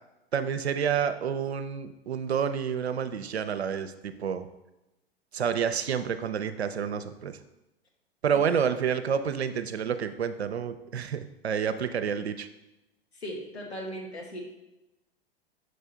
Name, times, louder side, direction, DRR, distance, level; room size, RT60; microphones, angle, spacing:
voice 1, 0.3-4.5 5.3-7.4 8.2-12.5, right 7 dB, 80° right, 10 dB, 0.5 m, -29 dB
voice 2, 13.2-14.4, equal, 85° left, -1 dB, 1.5 m, -37 dB
6.5 x 4.4 x 3.3 m, 0.95 s
figure-of-eight pair, 100°, 32 cm